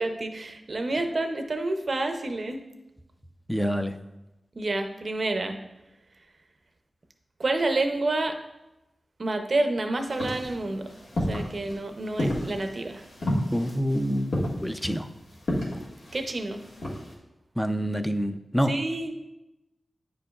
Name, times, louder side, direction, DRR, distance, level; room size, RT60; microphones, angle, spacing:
voice 1, 0.0-2.6 4.6-5.6 7.4-8.4 9.2-10.9 11.3-13.0 16.1-16.6 18.7-19.1, right 2 dB, 50° right, 6 dB, 0.6 m, -28 dB
voice 2, 3.5-4.0 13.5-15.1 17.6-18.7, equal, 5° left, 8 dB, 0.4 m, -27 dB
sound 1, 10.1-17.1, left 1 dB, 85° left, 1.6 m, -32 dB
9.2 x 5.1 x 2.4 m, 0.98 s
wide cardioid pair, 75°, 0 cm